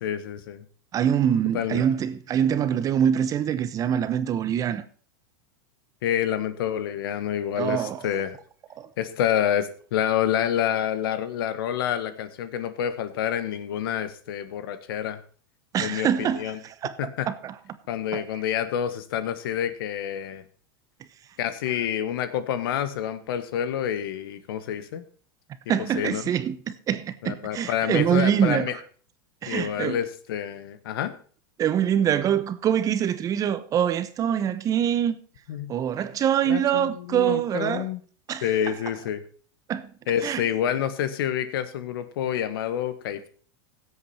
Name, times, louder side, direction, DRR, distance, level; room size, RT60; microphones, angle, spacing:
voice 1, 0.0-0.6 1.5-1.8 6.0-8.4 9.0-15.2 15.8-16.6 17.0-17.3 17.9-20.4 21.4-25.0 25.9-26.2 27.2-28.8 29.5-31.1 35.5-35.7 36.4-38.0 38.4-39.2 40.1-43.3, left 10 dB, 75° left, 1.5 m, -28 dB
voice 2, 0.9-4.8 7.6-8.0 8.8-8.9 15.7-16.9 17.3-17.5 18.1-18.2 25.7-28.7 29.4-30.0 31.6-35.2 35.7-37.9 38.3-38.4 39.7-39.9 40.2-40.4, right 9 dB, 30° right, 0.9 m, -24 dB
16.0 x 8.2 x 4.4 m
supercardioid pair, 135°, 12 cm